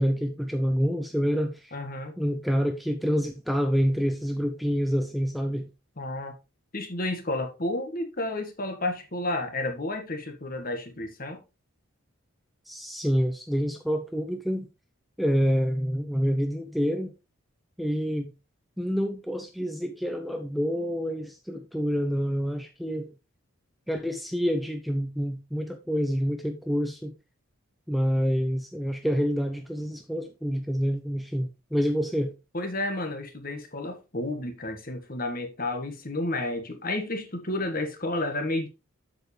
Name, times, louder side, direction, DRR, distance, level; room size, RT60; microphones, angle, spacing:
voice 1, 0.0-1.7 2.2-5.7 12.7-14.7 15.2-17.1 17.8-18.3 18.8-23.1 23.9-27.1 27.9-32.3, equal, ahead, 0.6 m, -27 dB
voice 2, 1.7-2.1 6.0-6.3 6.7-11.4 32.5-38.7, left 2 dB, 40° left, 1.5 m, -31 dB
7.9 x 7.0 x 3.3 m
head